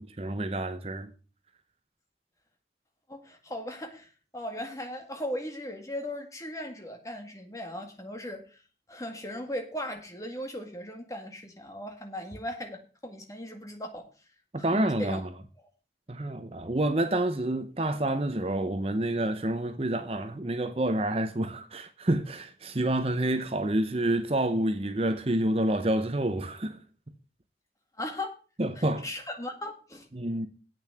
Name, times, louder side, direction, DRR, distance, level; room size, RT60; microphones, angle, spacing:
voice 1, 0.2-1.1 14.5-15.3 16.1-26.8 27.1-27.2 28.6-29.1 30.1-30.5, right 1 dB, 35° right, 0.8 m, -28 dB
voice 2, 3.1-8.6 8.9-14.1 14.7-15.2 28.0-28.3 28.8-30.1, left 1 dB, 20° left, 1.9 m, -38 dB
8.5 x 6.3 x 7.6 m
head